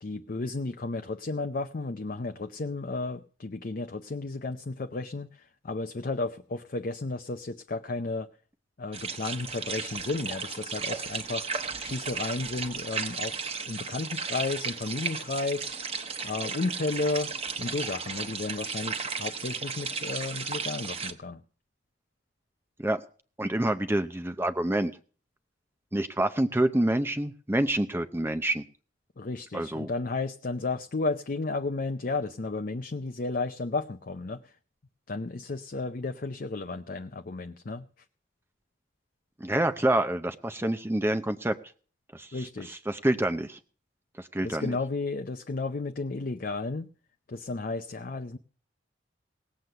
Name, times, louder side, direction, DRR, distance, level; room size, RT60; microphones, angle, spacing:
voice 1, 0.0-8.3 8.8-11.5 11.8-15.7 16.2-17.3 17.6-21.4 29.2-34.5 35.1-37.9 42.3-42.8 44.4-46.9 47.3-48.4, left 3 dB, 45° left, 7 dB, 0.6 m, -33 dB
sound 1, 8.9-21.1, right 5 dB, 30° right, 1.1 m, -35 dB
voice 2, 23.4-24.9 25.9-28.6 29.5-29.9 39.4-41.6 42.1-43.6 44.2-44.7, right 1 dB, 10° right, 10 dB, 0.6 m, -27 dB
18.0 x 7.8 x 6.7 m, 0.42 s
head